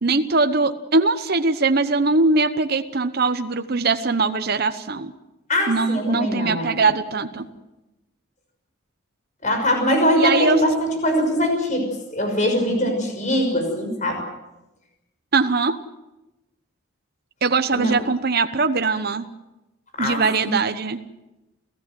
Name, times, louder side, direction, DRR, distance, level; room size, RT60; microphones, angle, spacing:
voice 1, 0.0-5.1 5.7-7.4 10.2-10.6 15.3-15.8 17.4-19.3 20.0-21.0, right 3 dB, 50° right, 8 dB, 0.9 m, -21 dB
voice 2, 5.5-6.7 9.4-14.2 17.7-17.9 20.0-20.5, equal, 35° left, 4 dB, 6.1 m, -22 dB
29.5 x 15.5 x 7.7 m, 0.99 s
head